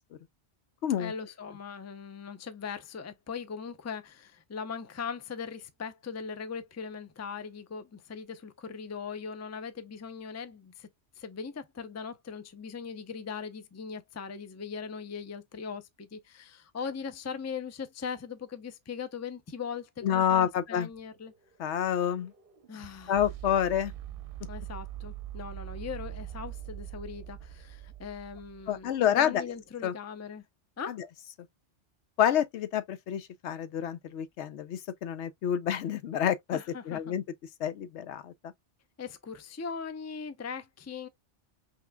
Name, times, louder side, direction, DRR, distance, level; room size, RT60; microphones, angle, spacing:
voice 1, 1.0-10.9 11.2-21.3 22.7-23.2 24.4-30.4 30.8-31.0 36.5-37.2 39.0-41.1, left 6 dB, 20° left, 0.4 m, -40 dB
voice 2, 20.0-20.9 21.6-22.3 23.1-23.9 28.7-29.4 29.8-29.9 30.9-31.0 32.2-36.6 36.9-37.2 37.6-38.5, left 9 dB, 75° left, 0.9 m, -28 dB
sound 1, 20.9-29.0, right 12 dB, 55° right, 0.8 m, -43 dB
5.8 x 3.1 x 2.2 m
omnidirectional pair, 1.2 m